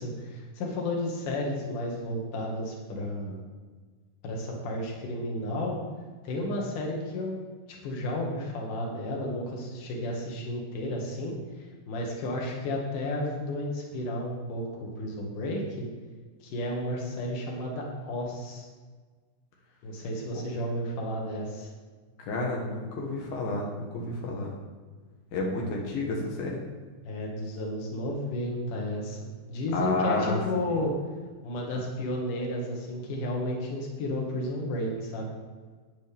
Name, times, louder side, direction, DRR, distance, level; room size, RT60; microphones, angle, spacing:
voice 1, 0.0-3.4 4.2-5.8 6.2-7.4 7.8-11.4 11.9-15.9 16.4-18.6 19.8-21.7 27.0-29.2 29.5-30.9 31.4-35.3, left 1 dB, 65° left, -1 dB, 3.4 m, -32 dB
voice 2, 22.2-24.6 25.3-26.6 29.7-30.4, left 2 dB, 85° left, -2 dB, 3.4 m, -30 dB
13.0 x 9.4 x 3.6 m, 1.4 s
omnidirectional pair, 4.1 m